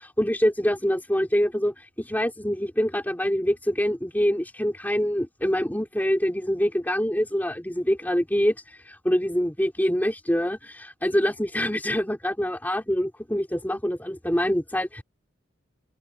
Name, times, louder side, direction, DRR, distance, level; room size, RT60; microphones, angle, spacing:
voice 1, 0.2-15.0, equal, 10° left, 3.4 m, -25 dB
open air
head